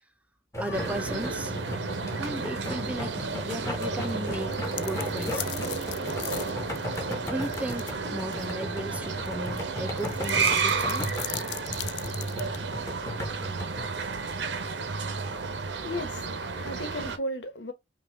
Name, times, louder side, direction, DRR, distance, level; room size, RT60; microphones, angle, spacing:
sound 1, 0.5-13.8, left 1 dB, 15° left, 1.5 m, -37 dB
voice 1, 0.6-1.6 2.2-5.7 7.2-11.1, right 1 dB, 10° right, 0.6 m, -36 dB
sound 2, 0.7-17.2, right 4 dB, 80° right, 0.8 m, -32 dB
sound 3, 4.4-8.0 8.3-8.4 9.2-12.6, left 15 dB, 70° left, 0.4 m, -39 dB
voice 2, 15.8-17.7, left 1 dB, 85° left, 1.2 m, -35 dB
5.5 x 2.4 x 3.4 m
head